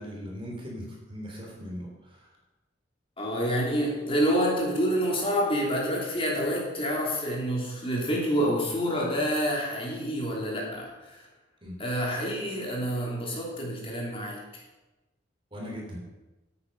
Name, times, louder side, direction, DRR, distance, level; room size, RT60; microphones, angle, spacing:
voice 1, 0.0-2.4 11.6-11.8 15.5-16.0, equal, 30° right, -1 dB, 3.4 m, -39 dB
voice 2, 3.2-11.3 11.8-14.6, equal, 30° left, -3 dB, 3.1 m, -28 dB
13.0 x 8.8 x 5.5 m, 1.1 s
head